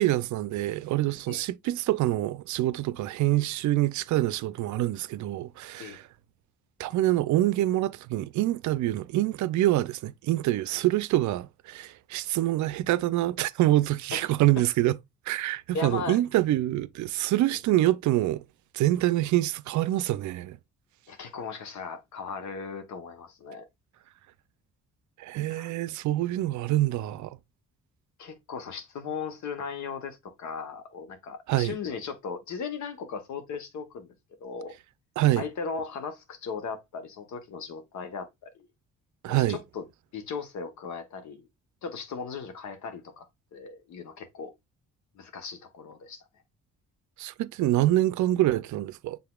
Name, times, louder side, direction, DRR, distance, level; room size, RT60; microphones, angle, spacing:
voice 1, 0.0-6.0 6.8-15.0 15.3-18.4 18.7-20.6 25.2-27.4 31.5-31.8 35.2-35.4 39.2-39.6 47.2-49.2, right 15 dB, 70° right, 0.5 m, -26 dB
voice 2, 15.7-16.2 21.1-23.6 25.5-25.7 28.2-34.1 34.4-34.7 35.4-38.7 39.3-39.8 40.1-41.5 41.8-44.5 45.1-46.2, left 5 dB, 70° left, 1.1 m, -37 dB
5.8 x 3.7 x 2.3 m
cardioid pair, 90°, 30 cm